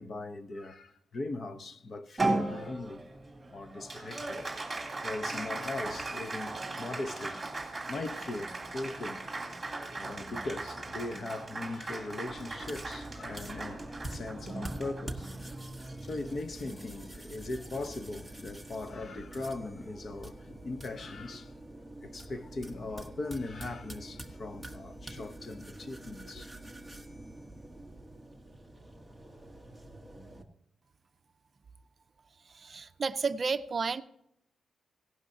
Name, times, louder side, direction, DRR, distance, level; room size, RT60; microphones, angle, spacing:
voice 1, 0.0-3.0 3.5-4.4 5.0-9.3 9.6-15.3 16.0-21.5 22.0-26.5, left 2 dB, 45° left, 0.9 m, -39 dB
Applause, 2.2-16.8, right 2 dB, 20° right, 3.2 m, -38 dB
sound 1, 12.3-30.4, right 1 dB, 5° left, 1.2 m, -46 dB
voice 2, 32.4-34.0, right 4 dB, 40° right, 0.5 m, -32 dB
17.0 x 12.0 x 2.8 m
wide cardioid pair, 120°, 0 cm